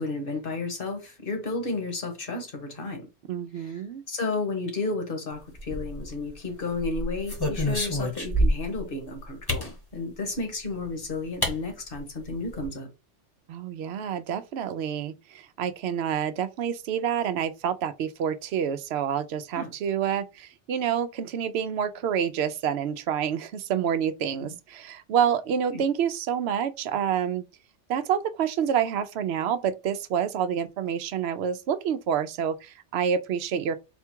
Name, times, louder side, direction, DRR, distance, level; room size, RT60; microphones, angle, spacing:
voice 1, 0.0-3.1 3.5-3.8 4.1-12.9 19.5-19.7 25.7-25.8, left 3 dB, 50° left, 1.4 m, -32 dB
voice 2, 3.3-4.0 13.5-27.4 27.9-33.8, right 8 dB, 65° right, 0.8 m, -28 dB
sound 1, 5.6-6.3 6.8-8.8 9.5-9.7 10.8-10.9 11.4-11.6 11.9-12.0 12.3-12.7, equal, 20° left, 1.0 m, -27 dB
4.3 x 2.3 x 4.4 m
omnidirectional pair, 1.2 m